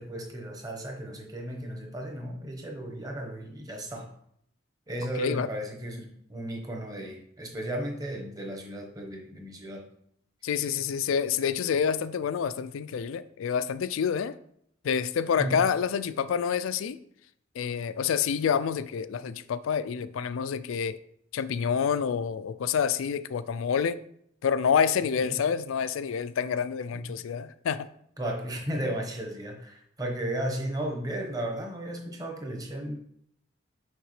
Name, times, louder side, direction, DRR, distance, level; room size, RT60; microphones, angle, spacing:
voice 1, 0.0-4.1 4.9-9.8 15.4-15.7 25.2-25.4 26.9-27.1 28.2-33.0, right 1 dB, 20° right, 1.1 m, -35 dB
voice 2, 5.2-5.5 10.4-14.4 14.8-17.0 17.6-21.0 21.3-24.0 24.4-27.9, left 7 dB, 85° left, 0.4 m, -28 dB
6.4 x 5.7 x 3.2 m
head